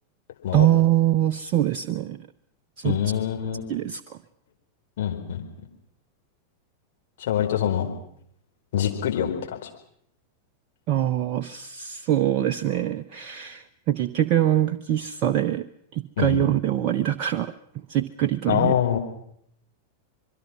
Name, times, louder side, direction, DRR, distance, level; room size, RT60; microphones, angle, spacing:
voice 1, 0.5-2.2 2.8-3.0 3.7-4.2 10.9-15.7 15.9-17.5 17.9-18.7, right 12 dB, 40° right, 7 dB, 0.9 m, -23 dB
voice 2, 2.8-3.7 5.0-5.4 7.2-7.9 8.7-9.7 16.2-16.5 18.5-19.0, left 10 dB, 55° left, 3 dB, 4.6 m, -25 dB
25.5 x 22.5 x 6.2 m, 0.70 s
figure-of-eight pair, 90°, 0 cm